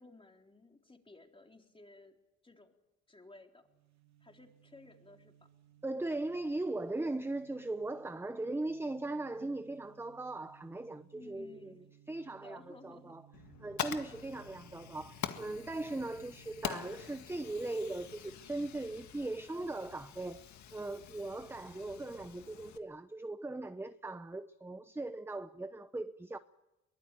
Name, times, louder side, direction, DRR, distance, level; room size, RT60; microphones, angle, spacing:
voice 1, 0.0-2.2 2.4-2.7 3.1-3.6 4.2-5.3 11.1-11.8 12.3-13.2, left 2 dB, 15° left, 3.8 m, -56 dB
sound 1, 3.6-18.2, right 11 dB, 65° right, 3.4 m, -63 dB
voice 2, 5.8-11.7 12.1-13.2 13.6-20.4 20.7-26.4, right 2 dB, 10° right, 0.8 m, -39 dB
Fire, 13.3-22.8, left 9 dB, 70° left, 1.9 m, -45 dB
23.0 x 20.5 x 9.2 m
cardioid pair, 90°, 30 cm